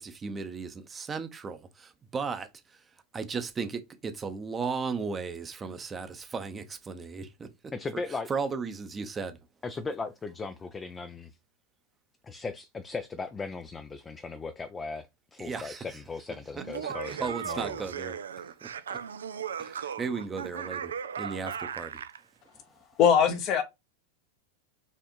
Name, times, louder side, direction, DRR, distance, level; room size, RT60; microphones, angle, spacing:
voice 1, 0.0-2.8 3.1-7.5 8.3-9.4 15.4-15.9 16.6-18.2 18.6-19.0 19.6-22.0, right 5 dB, 20° right, 0.7 m, -36 dB
voice 2, 7.7-8.3 9.6-11.4 12.2-17.8, left 4 dB, 20° left, 0.4 m, -37 dB
Laughter, 16.6-22.2, right 7 dB, 85° right, 0.3 m, -37 dB
voice 3, 23.0-23.6, left 8 dB, 45° left, 0.8 m, -21 dB
4.3 x 2.5 x 3.0 m
hypercardioid pair, 100°, 0 cm